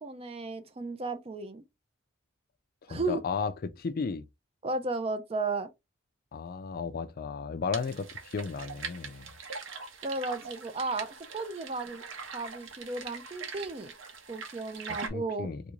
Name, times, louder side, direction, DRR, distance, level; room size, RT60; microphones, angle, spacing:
voice 1, 0.0-1.6 2.9-3.2 4.6-5.7 10.0-12.0 12.3-13.9 14.3-15.5, right 3 dB, 30° right, 0.4 m, -34 dB
voice 2, 2.8-4.2 6.3-9.3 15.1-15.6, left 5 dB, 45° left, 0.3 m, -34 dB
sound 1, 7.7-15.1, right 5 dB, 70° right, 0.9 m, -42 dB
3.5 x 2.5 x 3.0 m
head